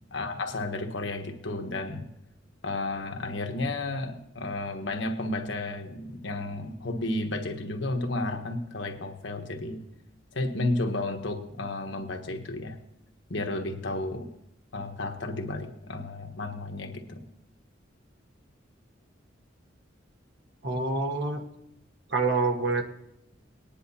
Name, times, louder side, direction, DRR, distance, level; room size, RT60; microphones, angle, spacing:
voice 1, 0.1-2.1 2.6-9.8 10.3-12.8 13.3-14.3 14.7-17.2, left 2 dB, 75° left, 4 dB, 1.3 m, -32 dB
voice 2, 20.6-21.4 22.1-22.8, right 3 dB, 60° right, 3 dB, 1.4 m, -26 dB
19.5 x 10.0 x 2.8 m, 0.81 s
head